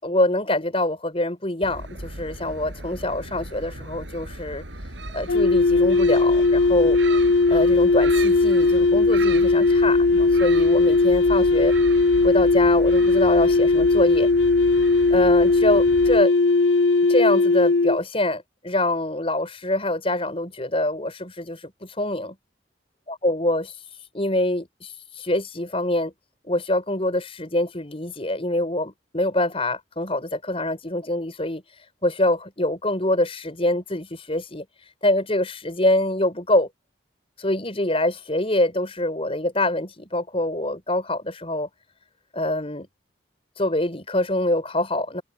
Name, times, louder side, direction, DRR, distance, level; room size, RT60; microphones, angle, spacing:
voice 1, 0.0-4.6 5.1-7.0 7.5-11.7 12.2-14.3 15.1-16.3 17.1-22.4 23.1-23.7 24.1-26.1 26.5-31.6 32.0-34.6 35.0-36.7 37.4-41.7 42.3-42.9 43.6-45.2, left 1 dB, 30° left, 6.0 m, -25 dB
Gull seagull, 1.6-16.2, right 2 dB, 75° right, 6.9 m, -37 dB
sound 1, 5.3-18.0, left 3 dB, 70° left, 0.5 m, -18 dB
head